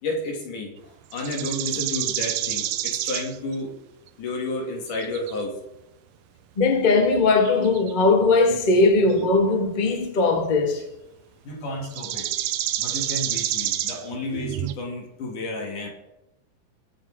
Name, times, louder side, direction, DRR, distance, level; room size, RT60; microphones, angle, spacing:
voice 1, 0.0-3.7 4.2-5.6 11.4-12.3 12.8-15.9, left 2 dB, 80° left, 4.1 m, -31 dB
sound 1, 1.1-3.5 5.0-5.3 7.4-7.9 9.1-9.6 11.8-14.7, right 12 dB, 80° right, 1.5 m, -28 dB
voice 2, 6.6-10.8, left 3 dB, 25° left, 1.0 m, -19 dB
23.5 x 7.8 x 3.7 m
omnidirectional pair, 3.5 m